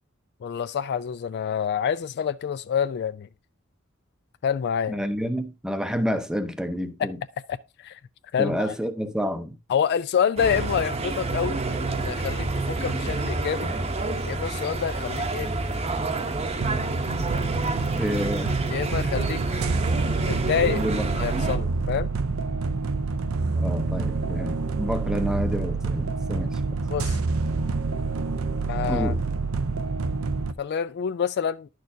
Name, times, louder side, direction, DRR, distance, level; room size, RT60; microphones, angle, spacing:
voice 1, 0.4-3.3 4.4-5.0 7.0-7.1 7.5-7.6 7.8-8.0 8.3-8.6 9.7-11.6 12.0-13.7 14.2-15.5 18.7-19.4 20.3-20.8 21.2-22.1 26.9-27.2 28.7-29.1 30.6-31.7, left 7 dB, 50° left, 0.3 m, -27 dB
voice 2, 4.9-7.2 8.4-9.5 18.0-18.5 20.8-21.0 23.6-26.6 28.9-29.2, equal, 5° right, 0.7 m, -29 dB
sound 1, 10.4-21.6, right 3 dB, 30° right, 0.9 m, -29 dB
sound 2, 16.6-30.5, right 3 dB, 75° right, 0.6 m, -27 dB
10.5 x 6.6 x 2.7 m
head